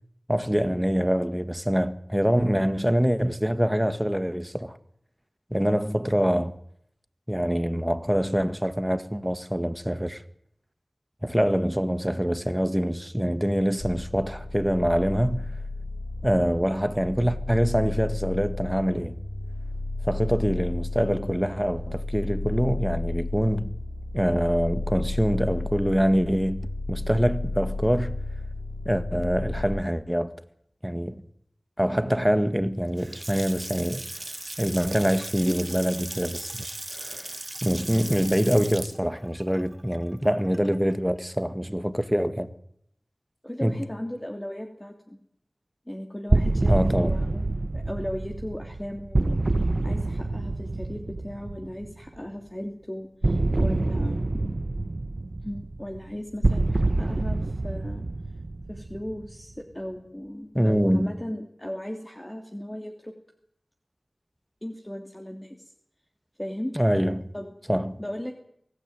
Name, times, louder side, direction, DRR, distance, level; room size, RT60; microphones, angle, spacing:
voice 1, 0.3-4.8 5.5-6.5 7.3-10.2 11.2-15.5 16.2-19.2 20.0-23.7 24.1-28.2 28.9-30.3 30.8-31.2 31.8-34.1 34.6-42.5 43.6-43.8 46.7-47.2 60.5-61.1 66.8-67.3 67.7-68.0, equal, 5° right, 1.8 m, -25 dB
sound 1, 13.8-29.7, left 2 dB, 40° left, 6.3 m, -33 dB
Water tap faucet / Sink (filling or washing) / Splash splatter, 32.8-40.9, right 1 dB, 45° right, 1.9 m, -38 dB
voice 2, 43.4-45.2 45.9-47.5 47.7-54.6 55.4-58.1 58.7-63.2 64.6-65.7 66.4-66.7 67.0-67.5 68.0-68.3, equal, 20° left, 2.9 m, -37 dB
sound 2, 46.3-52.0 53.2-59.5, right 2 dB, 65° right, 1.5 m, -26 dB
24.0 x 16.5 x 9.3 m
wide cardioid pair, 45°, 0 cm